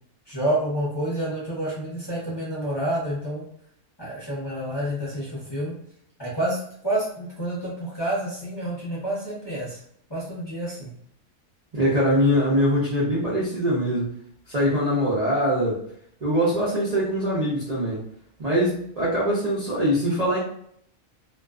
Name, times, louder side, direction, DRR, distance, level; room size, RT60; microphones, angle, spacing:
voice 1, 0.3-3.5 4.0-5.8 6.2-9.8 10.1-10.9, right 1 dB, 25° left, -8 dB, 0.6 m, -28 dB
voice 2, 11.7-14.1 14.5-15.8 16.2-18.0 18.4-20.4, equal, 55° right, -7 dB, 0.4 m, -22 dB
2.4 x 2.2 x 2.3 m, 0.67 s
omnidirectional pair, 1.5 m